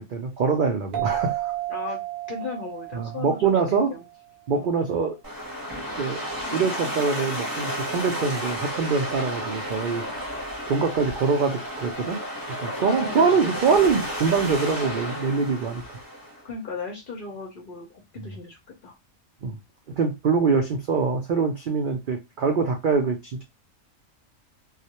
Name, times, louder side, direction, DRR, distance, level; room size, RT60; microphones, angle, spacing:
voice 1, 0.0-1.5 2.9-3.9 4.5-5.2 6.0-6.2 6.5-10.0 10.7-12.2 12.6-15.8 19.4-19.6 20.0-23.4, right 5 dB, 65° right, 0.5 m, -24 dB
sound 1, 0.9-4.2, right 15 dB, 90° right, 1.0 m, -32 dB
voice 2, 1.7-2.0 2.3-4.0 4.5-4.7 12.8-14.0 16.4-19.0, left 4 dB, 50° left, 0.7 m, -37 dB
sound 2, 5.2-16.4, equal, 20° right, 0.8 m, -32 dB
2.3 x 2.1 x 2.8 m
omnidirectional pair, 1.4 m